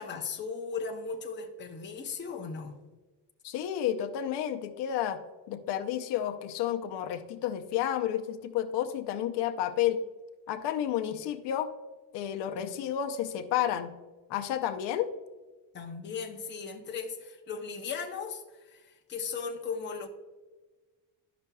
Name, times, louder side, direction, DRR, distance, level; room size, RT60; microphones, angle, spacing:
voice 1, 0.0-2.8 11.1-11.2 12.5-12.9 15.7-20.1, left 5 dB, 25° left, 2 dB, 0.7 m, -37 dB
voice 2, 3.4-5.2 5.5-10.0 10.5-11.7 12.1-13.9 14.3-15.1, left 11 dB, 75° left, 7 dB, 0.7 m, -31 dB
11.5 x 5.9 x 2.2 m, 1.2 s
cardioid pair, 170°, 41 cm